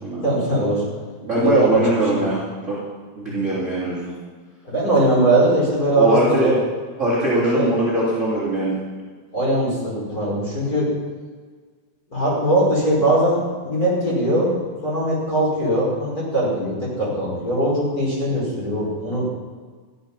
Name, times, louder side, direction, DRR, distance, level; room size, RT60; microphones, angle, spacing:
voice 1, 0.2-0.8 1.3-2.2 3.2-3.4 4.6-6.6 7.5-7.7 9.3-10.9 12.1-19.2, right 1 dB, 20° left, -6 dB, 5.4 m, -20 dB
voice 2, 1.2-2.4 2.7-2.8 3.2-4.1 6.0-6.5 7.0-8.8, right 1 dB, 20° right, -7 dB, 3.0 m, -21 dB
14.5 x 12.5 x 5.9 m, 1.5 s
omnidirectional pair, 5.3 m